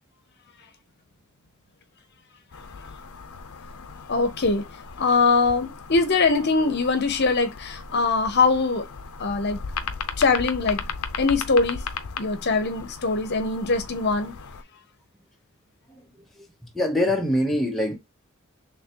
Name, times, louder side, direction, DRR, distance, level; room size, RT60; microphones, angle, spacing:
sound 1, 2.5-14.6, left 5 dB, 85° left, 0.6 m, -37 dB
voice 1, 4.1-4.6 5.0-8.9 9.2-9.6 10.2-10.8 11.2-11.8 12.2-14.4, left 4 dB, 50° left, 0.8 m, -22 dB
voice 2, 16.4-18.0, left 1 dB, ahead, 0.8 m, -24 dB
3.8 x 3.3 x 2.8 m
head